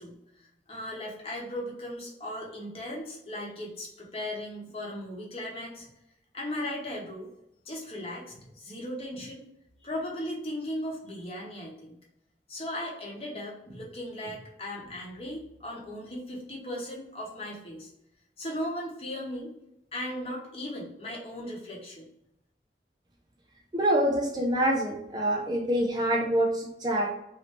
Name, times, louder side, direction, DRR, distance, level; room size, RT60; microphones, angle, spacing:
voice 1, 0.0-5.9 6.3-7.3 7.6-9.4 9.8-12.0 12.5-17.9 18.4-19.5 19.9-22.1, left 1 dB, 35° left, -3 dB, 0.9 m, -37 dB
voice 2, 23.7-27.1, right 1 dB, 25° right, 0 dB, 0.4 m, -26 dB
3.1 x 2.7 x 3.0 m, 0.84 s
head